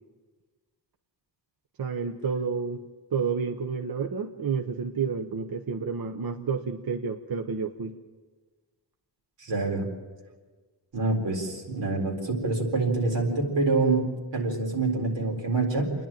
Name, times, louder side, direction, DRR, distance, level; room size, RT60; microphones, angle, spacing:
voice 1, 1.8-2.8 3.1-8.0, right 5 dB, 55° right, 5 dB, 0.9 m, -30 dB
voice 2, 9.4-9.9 10.9-14.1 14.3-15.9, right 3 dB, 90° right, 0 dB, 4.1 m, -26 dB
28.5 x 11.0 x 8.9 m, 1.4 s
wide cardioid pair, 165°, 43 cm